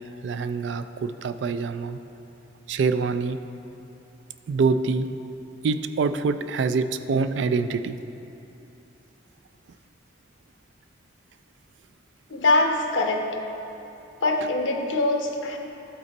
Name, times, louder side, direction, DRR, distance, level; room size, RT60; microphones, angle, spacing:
voice 1, 0.0-2.0 2.7-3.4 4.5-5.1 5.6-8.0, right 4 dB, 75° right, 10 dB, 0.3 m, -25 dB
voice 2, 12.3-13.2 14.2-15.6, left 2 dB, 85° left, 3 dB, 0.8 m, -23 dB
12.0 x 4.3 x 4.1 m, 2.9 s
head